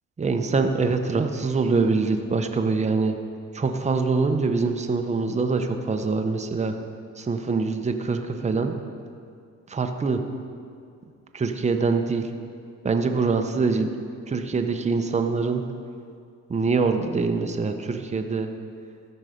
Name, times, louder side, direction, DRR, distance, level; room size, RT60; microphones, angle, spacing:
voice 1, 0.2-3.2 3.5-6.8 7.2-8.8 9.7-10.2 11.3-12.3 12.8-13.9 14.3-15.6 16.5-18.5, right 4 dB, 25° right, 5 dB, 0.7 m, -24 dB
13.5 x 5.5 x 5.1 m, 2.3 s
cardioid pair, 90°, 30 cm